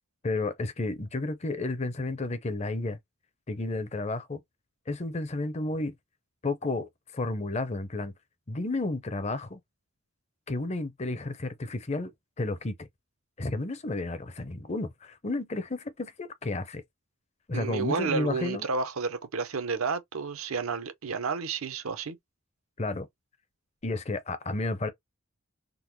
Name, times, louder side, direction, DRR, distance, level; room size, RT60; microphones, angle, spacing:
voice 1, 0.2-3.0 3.5-4.4 4.9-5.9 6.4-8.1 8.5-9.6 10.5-12.1 12.4-12.9 13.4-16.8 17.5-18.7 22.8-23.1 23.8-24.9, left 2 dB, 30° left, 0.5 m, -32 dB
voice 2, 17.5-22.2, right 5 dB, 80° right, 0.7 m, -31 dB
3.7 x 2.1 x 3.0 m
head